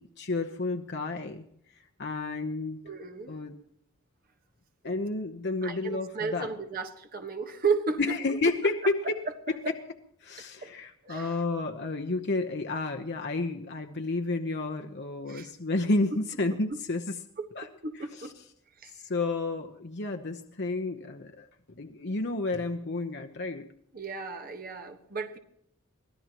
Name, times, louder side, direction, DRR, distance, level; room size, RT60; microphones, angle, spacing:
voice 1, 0.0-1.5 2.0-2.9 3.3-3.5 4.8-6.5 8.0-9.2 9.7-9.8 10.2-17.2 17.5-17.7 18.2-18.3 19.1-21.5 21.8-23.7, left 2 dB, 55° left, 4 dB, 0.9 m, -31 dB
voice 2, 2.8-3.3 5.6-8.0 9.6-9.7 10.6-10.7 11.0-11.3 15.3-15.5 16.7-16.8 17.4-18.3 18.8-19.0 23.9-25.4, right 5 dB, 45° right, 5 dB, 1.4 m, -33 dB
24.5 x 17.0 x 3.0 m, 0.71 s
head